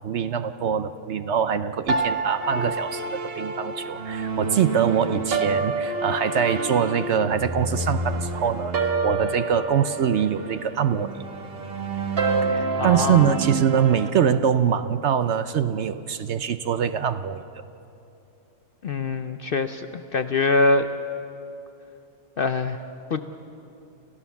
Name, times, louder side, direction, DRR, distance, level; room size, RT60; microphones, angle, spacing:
voice 1, 0.0-11.1 12.4-17.4, right 8 dB, 60° right, 11 dB, 0.8 m, -23 dB
sound 1, 1.9-14.1, right 3 dB, 45° right, 1.4 m, -28 dB
voice 2, 12.8-13.4 18.8-20.9 22.4-22.8 23.1-23.2, left 3 dB, 55° left, 9 dB, 0.6 m, -24 dB
29.0 x 15.0 x 7.1 m, 2.8 s
omnidirectional pair, 1.5 m